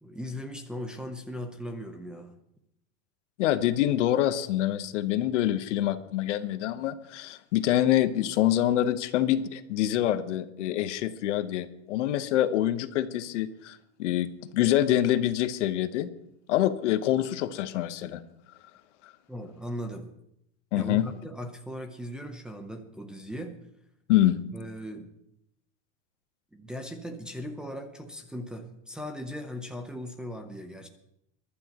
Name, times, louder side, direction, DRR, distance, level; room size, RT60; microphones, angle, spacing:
voice 1, 0.0-2.3 19.3-20.1 20.8-23.6 24.5-25.1 26.5-30.9, equal, ahead, 2 dB, 0.7 m, -38 dB
voice 2, 3.4-16.1 16.5-18.2 20.7-21.1 24.1-24.4, left 12 dB, 70° left, 11 dB, 1.2 m, -26 dB
22.5 x 12.0 x 3.0 m, 0.78 s
supercardioid pair, 165°, 37 cm